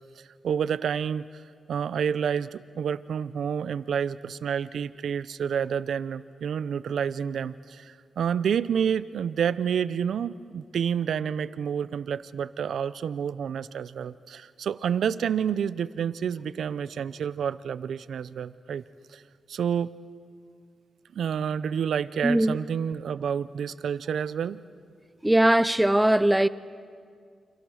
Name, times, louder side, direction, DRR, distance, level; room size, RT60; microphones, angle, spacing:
voice 1, 0.4-1.3 1.7-18.8 19.1-19.2 19.5-19.9 21.1-24.6, right 8 dB, 80° right, 0.6 m, -29 dB
voice 2, 22.2-22.6 25.2-26.5, right 1 dB, 10° right, 0.6 m, -20 dB
29.5 x 26.0 x 6.4 m
cardioid pair, 85°, 0 cm